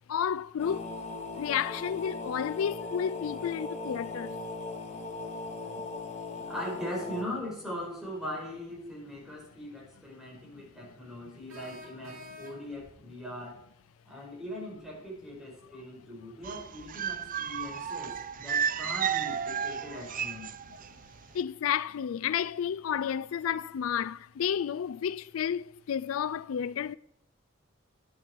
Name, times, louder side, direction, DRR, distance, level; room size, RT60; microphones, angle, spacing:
voice 1, 0.1-0.9 1.4-4.4 20.7-20.8 21.3-27.0, left 8 dB, 85° left, 0.4 m, -31 dB
sound 1, 0.6-7.2, left 3 dB, 35° left, 1.9 m, -38 dB
voice 2, 6.5-13.6 14.1-20.5, equal, 5° right, 5.4 m, -40 dB
sound 2, 11.5-12.9, left 2 dB, 90° right, 4.0 m, -48 dB
sound 3, 16.4-20.9 21.2-21.4, right 8 dB, 45° right, 0.6 m, -33 dB
12.0 x 11.0 x 4.6 m
head